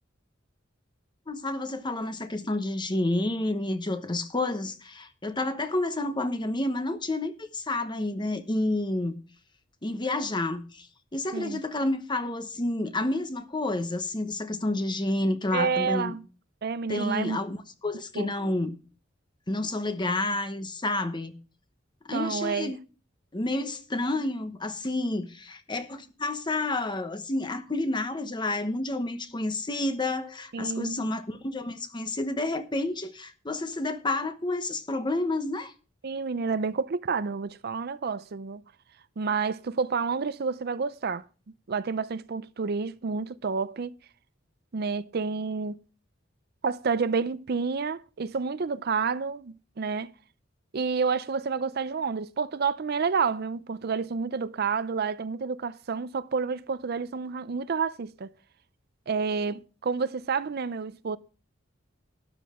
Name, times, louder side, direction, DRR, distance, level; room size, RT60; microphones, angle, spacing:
voice 1, 1.3-9.2 9.8-10.9 11.1-16.1 16.9-17.6 17.8-18.7 19.5-21.4 22.1-22.8 23.3-35.7, left 2 dB, 25° left, 0.9 m, -29 dB
voice 2, 15.5-16.2 16.6-17.4 18.1-18.3 22.1-22.7 30.5-31.0 36.0-38.6 39.2-41.2 41.7-43.9 44.7-45.8 46.6-50.1 50.7-58.3 59.1-61.2, right 5 dB, 50° right, 0.5 m, -29 dB
12.5 x 9.7 x 3.6 m
head